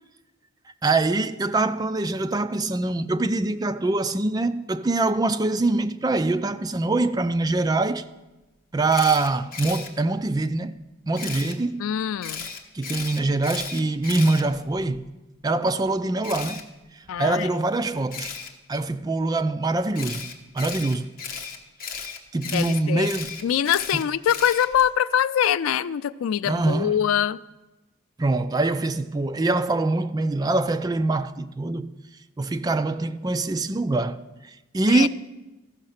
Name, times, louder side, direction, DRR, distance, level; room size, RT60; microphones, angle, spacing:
voice 1, 0.8-8.0 8.7-10.8 11.1-11.8 12.7-15.1 15.4-16.7 17.2-18.3 18.7-20.3 20.5-21.1 22.3-23.4 23.9-24.0 26.5-27.0 28.2-31.9 32.4-34.2 34.7-35.1, right 2 dB, 20° right, 0.3 m, -24 dB
Camera, 8.9-9.9 11.2-11.5 12.2-15.0 16.2-16.6 18.1-18.5 19.9-24.9, left 6 dB, 45° left, 1.0 m, -35 dB
voice 2, 11.8-12.5 17.1-17.6 22.5-23.1 23.4-27.4 34.9-35.1, left 9 dB, 80° left, 0.3 m, -24 dB
14.5 x 6.3 x 5.7 m
head